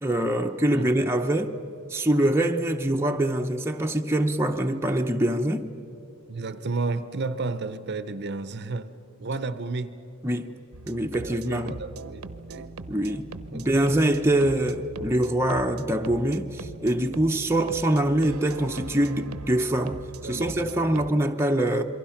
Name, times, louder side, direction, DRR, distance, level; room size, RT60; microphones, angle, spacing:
voice 1, 0.0-1.5 1.9-5.7 10.2-10.5 10.9-11.8 12.9-21.8, right 1 dB, 10° right, 0.7 m, -24 dB
voice 2, 6.3-8.9 9.2-10.0 11.2-12.7 13.5-13.9 20.2-20.7, right 3 dB, 50° right, 0.7 m, -32 dB
sound 1, 10.7-21.1, right 3 dB, 80° right, 0.8 m, -41 dB
27.5 x 23.0 x 5.8 m
head